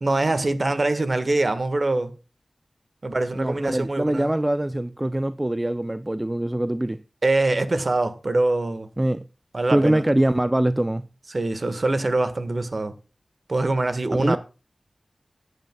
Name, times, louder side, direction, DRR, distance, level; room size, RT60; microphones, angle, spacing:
voice 1, 0.0-2.1 3.0-4.3 7.2-8.9 9.5-10.0 11.3-12.9 13.5-14.4, right 2 dB, 55° right, 1.5 m, -23 dB
voice 2, 3.3-7.0 9.0-9.3 9.7-11.1 14.2-14.4, right 1 dB, 20° right, 0.4 m, -23 dB
18.0 x 9.0 x 2.3 m
wide cardioid pair, 70°, 0 cm